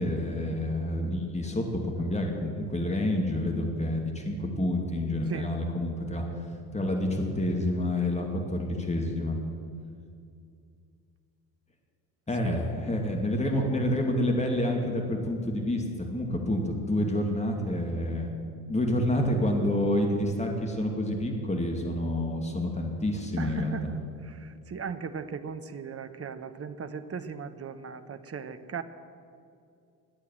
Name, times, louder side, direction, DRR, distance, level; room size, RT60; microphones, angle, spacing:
voice 1, 0.0-6.2 6.7-9.4 12.3-18.3 18.7-23.9, left 1 dB, 15° left, 2 dB, 2.5 m, -28 dB
voice 2, 23.4-28.8, right 6 dB, 30° right, 10 dB, 1.1 m, -37 dB
21.0 x 8.3 x 7.7 m, 2.4 s
hypercardioid pair, 55°, 49 cm